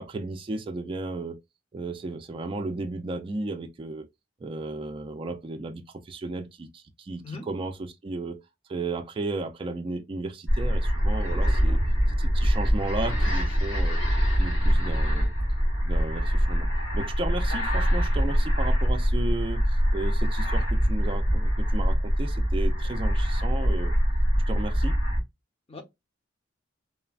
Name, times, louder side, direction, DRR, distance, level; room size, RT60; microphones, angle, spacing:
voice 1, 0.0-1.4 1.7-4.1 4.4-8.4 8.7-11.8 12.1-14.0 14.4-15.3 15.8-16.7 16.9-23.9 24.5-25.0, right 2 dB, 25° right, 0.3 m, -34 dB
sound 1, 10.5-25.2, equal, 75° left, 1.6 m, -24 dB
voice 2, 11.3-11.8 25.7-25.8, left 3 dB, 30° left, 0.7 m, -41 dB
3.2 x 2.1 x 2.3 m
head